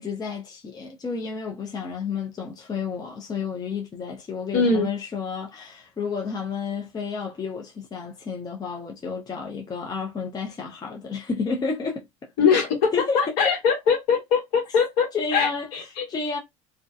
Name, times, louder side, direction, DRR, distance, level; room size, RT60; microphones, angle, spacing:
voice 1, 0.0-12.1 12.5-12.6 12.9-13.6 15.1-16.4, left 5 dB, 20° left, 0.7 m, -31 dB
voice 2, 4.5-4.9 12.4-12.7 13.1-16.1, left 5 dB, 65° left, 1.3 m, -22 dB
2.5 x 2.2 x 2.4 m
hypercardioid pair, 85°, 17 cm